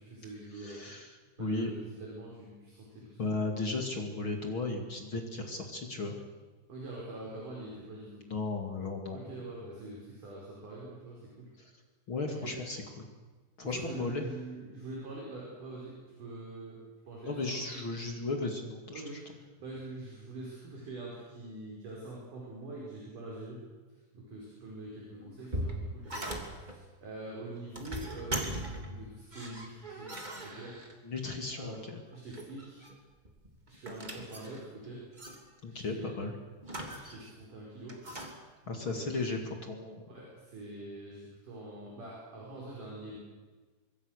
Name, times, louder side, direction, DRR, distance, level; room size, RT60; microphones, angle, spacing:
voice 1, 0.0-0.8 1.4-3.4 6.7-8.2 9.1-11.5 12.3-12.6 13.6-15.9 16.2-16.8 17.1-17.6 18.9-19.2 19.6-23.6 24.1-30.1 30.4-30.8 31.5-31.8 32.1-32.8 33.7-35.0 35.7-36.1 36.9-38.0 38.6-39.1 40.1-43.2, right 2 dB, 45° right, -4 dB, 6.6 m, -44 dB
voice 2, 0.5-1.7 3.2-6.2 8.3-9.3 11.6-11.7 12.1-13.1 13.6-14.2 17.2-19.0 31.0-32.0 35.6-36.3 38.7-40.2, left 3 dB, 35° left, 3 dB, 2.3 m, -35 dB
sound 1, 25.2-26.8 27.6-29.0 29.3-31.2 32.1-32.9 33.2-34.8 35.2-35.4 36.6-37.4 37.9-38.3, right 1 dB, 15° right, 2.3 m, -39 dB
25.5 x 23.0 x 6.6 m, 1.3 s
omnidirectional pair, 5.1 m